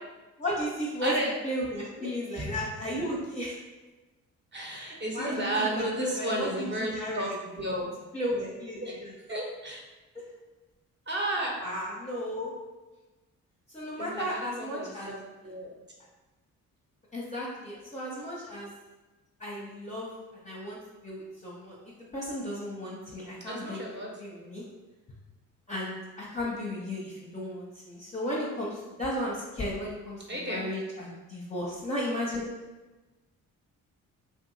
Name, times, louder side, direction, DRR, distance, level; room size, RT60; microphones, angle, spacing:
voice 1, 0.4-1.1 1.4-3.6 5.1-7.4 8.1-9.1 10.1-10.2 11.6-12.5 13.7-15.1 17.1-18.7 19.4-20.1 20.4-23.8 24.2-24.6 25.7-32.5, equal, 20° left, -5 dB, 0.7 m, -34 dB
voice 2, 1.0-1.3 2.0-2.1 2.4-2.6 4.5-7.9 8.8-8.9 9.3-9.8 11.1-11.6 14.0-15.7 23.5-24.1 30.3-30.7, right 1 dB, 30° right, -1 dB, 0.8 m, -33 dB
2.7 x 2.5 x 2.6 m, 1.1 s
hypercardioid pair, 45°, 39 cm